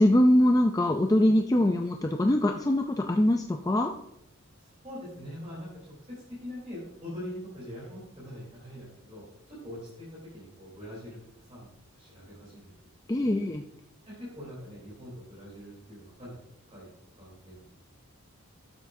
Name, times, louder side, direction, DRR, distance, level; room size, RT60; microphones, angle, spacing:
voice 1, 0.0-3.9 13.1-13.6, left 1 dB, 15° left, 3 dB, 0.4 m, -23 dB
voice 2, 4.8-5.7 6.4-9.2 9.6-10.1 10.3-11.2 11.5-11.7 11.9-12.7 13.2-13.4 14.2-16.4 16.7-16.9 17.2-17.7, left 1 dB, 30° right, -7 dB, 3.5 m, -43 dB
12.0 x 7.4 x 2.7 m, 0.80 s
head